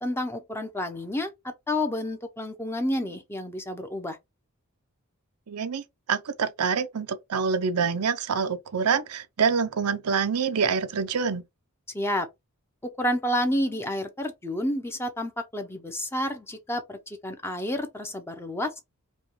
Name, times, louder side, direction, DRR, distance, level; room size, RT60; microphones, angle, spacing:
voice 1, 0.0-4.2 11.9-12.3 12.8-18.7, left 1 dB, 10° left, 0.7 m, -30 dB
voice 2, 5.5-11.4, right 6 dB, 85° right, 0.6 m, -26 dB
5.1 x 2.3 x 3.1 m
head